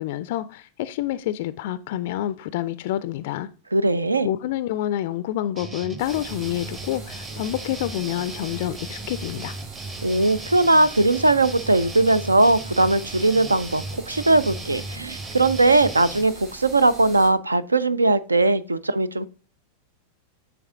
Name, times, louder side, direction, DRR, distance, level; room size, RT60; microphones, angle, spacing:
voice 1, 0.0-3.5 4.2-9.6, left 13 dB, 50° left, 0.3 m, -28 dB
voice 2, 3.7-4.3 10.0-19.3, right 2 dB, 80° right, 0.4 m, -19 dB
sound 1, 5.6-16.2, right 2 dB, 20° right, 0.8 m, -36 dB
sound 2, 6.0-17.3, right 4 dB, 40° right, 1.8 m, -43 dB
8.4 x 3.5 x 3.5 m
figure-of-eight pair, 90°, 0 cm